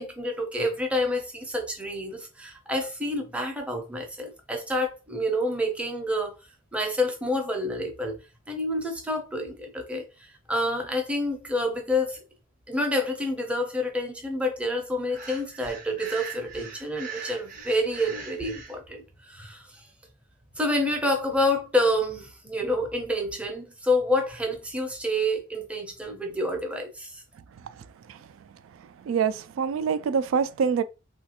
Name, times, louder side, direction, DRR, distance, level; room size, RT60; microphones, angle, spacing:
voice 1, 0.0-6.3 6.7-8.2 8.5-12.2 12.7-19.8 20.6-27.2, left 1 dB, 5° right, 0.6 m, -28 dB
Breathing, 15.1-18.7, right 6 dB, 40° right, 0.7 m, -40 dB
voice 2, 29.1-30.8, right 6 dB, 75° right, 0.3 m, -25 dB
3.2 x 2.5 x 2.8 m
head